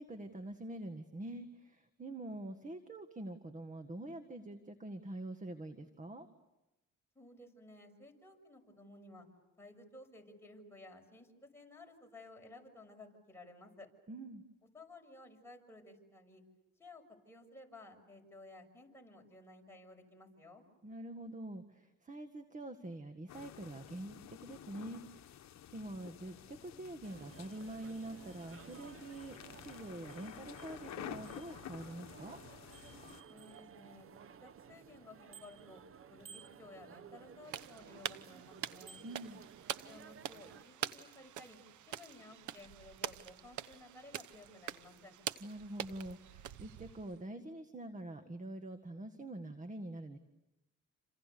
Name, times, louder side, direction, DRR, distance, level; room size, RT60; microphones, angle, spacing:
voice 1, 0.0-6.3 14.1-14.4 20.8-25.5 25.7-32.4 39.0-39.4 45.4-50.2, right 1 dB, 25° right, 8 dB, 1.8 m, -45 dB
voice 2, 7.1-9.3 9.6-13.9 14.7-16.4 16.8-20.6 33.3-35.8 36.1-39.0 39.8-41.6 41.9-45.2, left 2 dB, 10° left, 1 dB, 6.6 m, -56 dB
sound 1, 23.3-33.2, left 11 dB, 60° left, 1.1 m, -51 dB
sound 2, 27.0-40.6, right 7 dB, 45° right, 0.9 m, -55 dB
sound 3, 37.5-47.2, right 11 dB, 75° right, 1.0 m, -45 dB
28.5 x 27.0 x 6.9 m, 0.98 s
cardioid pair, 90°, 30 cm